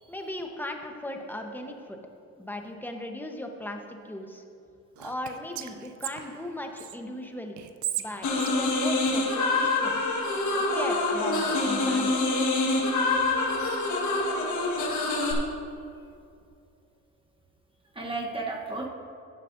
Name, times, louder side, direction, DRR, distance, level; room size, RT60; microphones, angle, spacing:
voice 1, 0.1-2.0 2.4-4.4 5.0-7.6 8.0-10.1 10.5-12.2, left 1 dB, 5° left, 3 dB, 1.0 m, -37 dB
Whispering, 5.0-7.0 7.6-9.7, right 12 dB, 75° right, 0.6 m, -37 dB
sound 1, 8.2-15.3, left 2 dB, 70° left, 1.6 m, -26 dB
voice 2, 12.9-13.5 17.9-18.9, right 3 dB, 15° right, -1 dB, 1.1 m, -35 dB
15.5 x 7.4 x 2.6 m, 2.5 s
cardioid pair, 90°, 30 cm